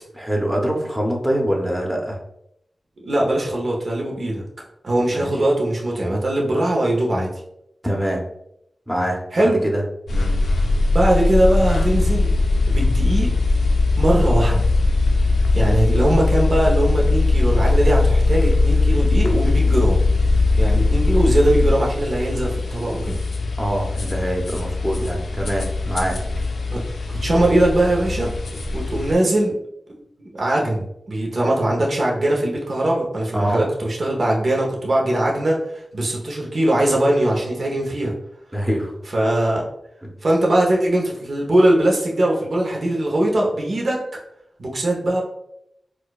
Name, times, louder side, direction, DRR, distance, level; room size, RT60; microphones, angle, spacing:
voice 1, 0.2-2.2 5.1-5.3 7.8-8.3 8.9-9.8 10.1-10.3 23.6-26.2 33.3-33.6 38.5-38.9 40.0-40.1, equal, 15° right, -1 dB, 0.8 m, -24 dB
voice 2, 3.0-4.4 4.8-7.3 9.3-9.6 10.9-12.3 12.7-13.3 14.0-14.7 15.5-20.0 20.6-23.2 26.7-26.8 27.1-28.3 28.7-29.5 29.9-38.1 39.1-39.6 40.2-44.0 44.6-45.2, right 1 dB, 65° right, -2 dB, 0.9 m, -20 dB
sound 1, 10.1-29.1, left 3 dB, 85° left, 0.5 m, -20 dB
4.3 x 2.4 x 2.3 m, 0.77 s
cardioid pair, 45°, 0 cm